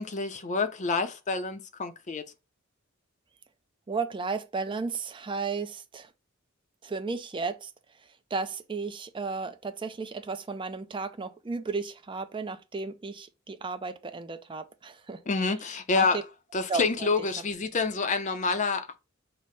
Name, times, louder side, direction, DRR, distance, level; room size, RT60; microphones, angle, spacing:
voice 1, 0.0-2.2 15.3-16.2 16.5-19.0, left 4 dB, 35° left, 0.5 m, -28 dB
voice 2, 3.9-6.1 6.8-7.7 8.3-15.2 15.9-16.1 16.7-16.8, right 4 dB, 25° right, 0.4 m, -34 dB
5.6 x 2.1 x 3.2 m
head